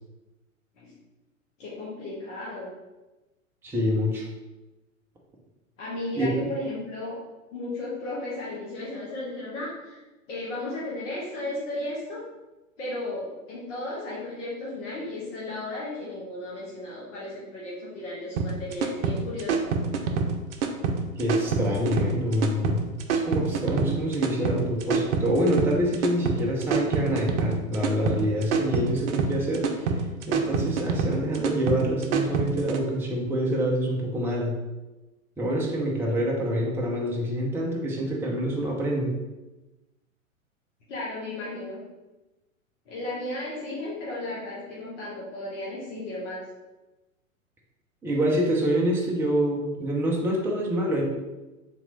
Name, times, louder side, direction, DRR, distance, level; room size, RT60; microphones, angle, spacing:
voice 1, 1.6-2.7 5.8-7.2 7.5-10.0 10.3-12.2 12.8-19.7 40.9-41.8 42.9-46.5, left 2 dB, 60° left, -6 dB, 1.3 m, -34 dB
voice 2, 3.6-4.3 6.1-6.3 21.2-29.9 30.3-34.5 35.4-39.2 48.0-51.0, equal, 5° right, -2 dB, 0.4 m, -26 dB
sound 1, 18.4-32.8, right 5 dB, 55° right, 0.6 m, -26 dB
3.7 x 2.9 x 3.9 m, 1.1 s
figure-of-eight pair, 105°, 41 cm